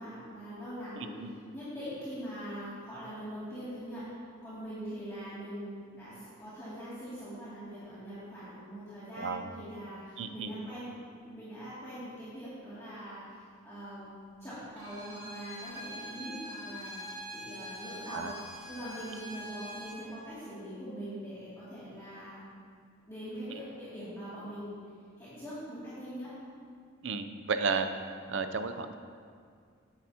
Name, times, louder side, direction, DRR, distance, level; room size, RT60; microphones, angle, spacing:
voice 1, 0.0-1.2 1.5-4.1 4.4-11.0 11.2-14.1 14.4-17.0 17.3-22.5 23.1-24.7 25.2-26.3, equal, 15° left, -14 dB, 2.5 m, -42 dB
voice 2, 1.0-1.3 9.2-9.5 10.2-10.5 18.1-18.3 27.0-27.9 28.3-29.0, right 5 dB, 60° right, 9 dB, 0.6 m, -33 dB
Bowed string instrument, 14.7-20.1, equal, 35° right, 2.3 m, -44 dB
12.5 x 9.7 x 2.9 m, 2.1 s
head